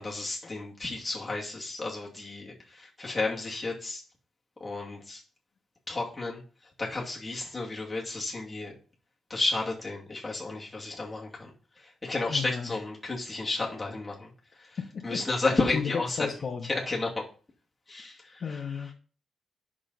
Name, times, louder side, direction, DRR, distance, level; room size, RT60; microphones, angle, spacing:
voice 1, 0.0-4.0 4.6-5.2 5.9-6.4 6.8-8.8 9.3-14.3 14.6-14.8 15.0-16.2 16.7-17.2 17.9-18.6, left 3 dB, 15° left, -3 dB, 2.3 m, -32 dB
voice 2, 12.3-12.8 14.8-15.2 15.5-16.7 18.4-18.9, left 6 dB, 45° left, 3 dB, 0.9 m, -34 dB
8.4 x 6.2 x 4.1 m, 0.40 s
wide cardioid pair, 160°, 0 cm